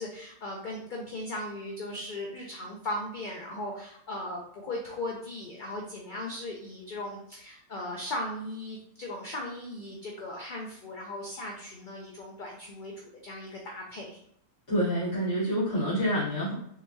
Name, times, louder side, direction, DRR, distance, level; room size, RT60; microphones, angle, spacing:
voice 1, 0.0-14.2, left 1 dB, 50° left, 0 dB, 0.6 m, -38 dB
voice 2, 14.7-16.5, equal, 70° left, -11 dB, 2.0 m, -27 dB
3.7 x 3.4 x 2.6 m, 0.71 s
omnidirectional pair, 1.3 m